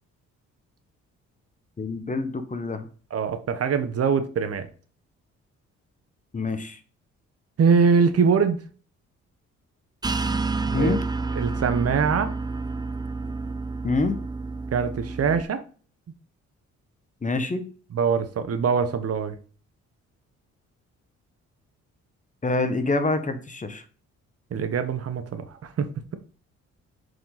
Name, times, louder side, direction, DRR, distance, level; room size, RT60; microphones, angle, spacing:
voice 1, 1.8-2.9 6.3-6.8 10.7-11.0 13.8-14.2 17.2-17.6 22.4-23.8, left 3 dB, 25° left, 9 dB, 1.2 m, -26 dB
voice 2, 3.1-4.7 7.6-8.6 10.7-11.0 11.3-12.3 14.7-15.6 17.9-19.4 24.5-26.2, right 6 dB, 50° right, 10 dB, 1.1 m, -23 dB
sound 1, 10.0-15.4, right 3 dB, 15° right, 0.5 m, -29 dB
7.5 x 5.2 x 4.1 m, 0.40 s
cardioid pair, 90°, 30 cm